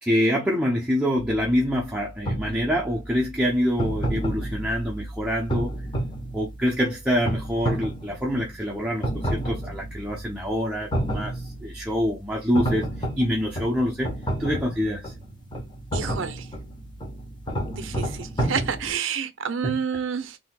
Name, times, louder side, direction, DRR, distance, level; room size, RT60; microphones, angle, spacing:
voice 1, 0.0-5.7 6.3-12.9 13.2-14.1 14.4-15.1 19.6-19.8, equal, 5° right, 0.6 m, -25 dB
sound 1, 1.2-18.9, right 1 dB, 25° left, 1.0 m, -31 dB
voice 2, 15.9-16.5 17.7-20.4, right 6 dB, 85° right, 0.6 m, -29 dB
4.1 x 2.7 x 2.2 m
head